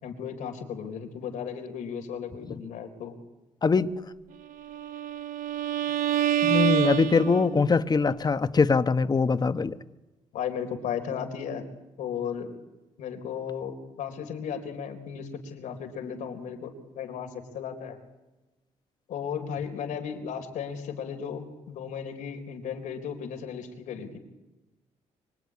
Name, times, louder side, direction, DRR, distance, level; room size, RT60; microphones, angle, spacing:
voice 1, 0.0-3.2 10.3-11.6 12.0-12.5 13.0-18.0 19.1-24.2, left 7 dB, 90° left, 4.0 m, -35 dB
voice 2, 3.6-3.9 6.4-9.8, left 4 dB, 30° left, 1.3 m, -23 dB
Bowed string instrument, 4.6-7.8, right 11 dB, 90° right, 1.4 m, -27 dB
25.0 x 24.5 x 9.6 m
cardioid pair, 90°, 13 cm